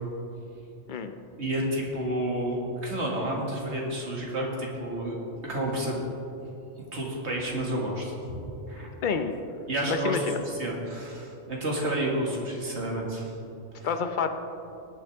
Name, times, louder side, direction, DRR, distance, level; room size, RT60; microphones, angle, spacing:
voice 1, 1.4-5.2 5.4-6.0 6.9-8.4 8.7-8.9 9.7-10.3 10.6-13.3 13.8-13.9, right 1 dB, 65° right, -2 dB, 2.3 m, -30 dB
voice 2, 9.0-9.3 9.9-10.4 13.8-14.3, left 6 dB, 50° left, 8 dB, 0.8 m, -28 dB
19.0 x 8.4 x 3.5 m, 2.8 s
omnidirectional pair, 1.2 m